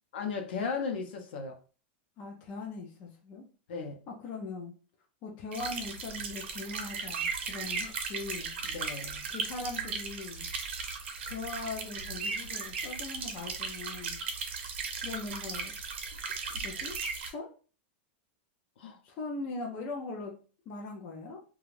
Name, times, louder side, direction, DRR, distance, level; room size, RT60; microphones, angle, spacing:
voice 1, 0.1-1.6 3.7-4.0 8.7-9.3 18.8-19.0, left 5 dB, 65° left, 0.7 m, -36 dB
voice 2, 2.2-3.4 4.1-4.7 5.2-8.5 9.3-10.5 11.3-14.2 15.0-15.7 16.1-17.0 17.2-17.5 19.0-20.4 20.7-21.4, left 3 dB, 25° left, 0.4 m, -40 dB
sound 1, 5.5-17.3, right 5 dB, 70° right, 0.7 m, -37 dB
2.4 x 2.2 x 3.1 m
supercardioid pair, 180°, 6 cm